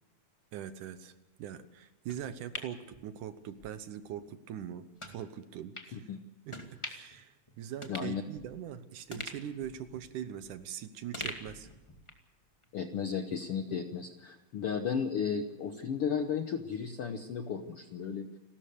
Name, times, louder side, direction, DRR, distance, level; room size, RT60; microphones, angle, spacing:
voice 1, 0.5-1.1 1.4-6.1 6.5-11.7, right 9 dB, 70° right, 12 dB, 2.3 m, -42 dB
sound 1, 2.1-3.7 4.1-4.2 5.0-5.2 5.7-5.9 6.5-7.2 7.5-7.6 7.8-8.7 9.1-10.7 11.1-12.3 12.6-12.7, left 1 dB, 10° left, 1.4 m, -44 dB
voice 2, 7.9-8.2 12.7-18.4, left 6 dB, 70° left, 7 dB, 1.4 m, -34 dB
29.5 x 13.5 x 6.9 m, 1.1 s
omnidirectional pair, 4.0 m